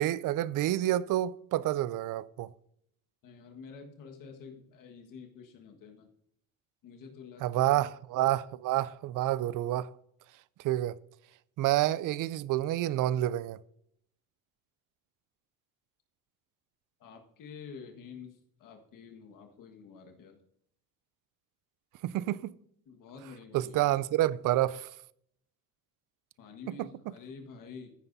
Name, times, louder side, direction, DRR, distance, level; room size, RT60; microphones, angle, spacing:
voice 1, 0.0-2.5 7.4-9.9 10.6-11.0 11.6-13.6 22.0-22.5 23.5-24.9 26.7-26.9, right 14 dB, 60° right, 0.5 m, -28 dB
voice 2, 3.2-6.1 6.8-7.9 17.0-20.4 22.9-24.0 26.4-27.9, left 5 dB, 60° left, 1.7 m, -48 dB
15.0 x 9.3 x 2.7 m
cardioid pair, 110°, 36 cm